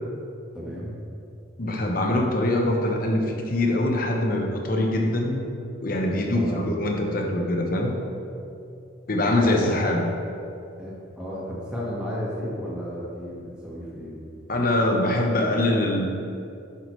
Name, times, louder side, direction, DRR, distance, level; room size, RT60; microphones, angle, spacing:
voice 1, 0.5-0.9 6.3-6.7 9.4-9.8 10.8-14.2, equal, 5° right, -7 dB, 1.4 m, -33 dB
voice 2, 1.6-5.5 5.8-7.9 9.1-10.1 14.5-16.1, left 1 dB, 45° left, 1 dB, 0.9 m, -23 dB
11.0 x 5.9 x 3.1 m, 2.6 s
head